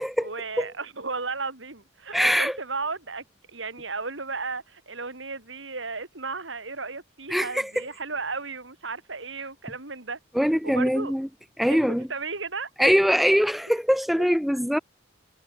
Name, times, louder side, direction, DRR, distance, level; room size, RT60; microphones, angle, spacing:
voice 1, 0.2-10.2 10.6-11.1 11.7-13.0 14.2-14.3, right 4 dB, 80° right, 4.3 m, -34 dB
voice 2, 2.1-2.6 7.3-7.8 10.3-11.3 11.6-12.1 12.8-14.8, equal, ahead, 0.7 m, -22 dB
head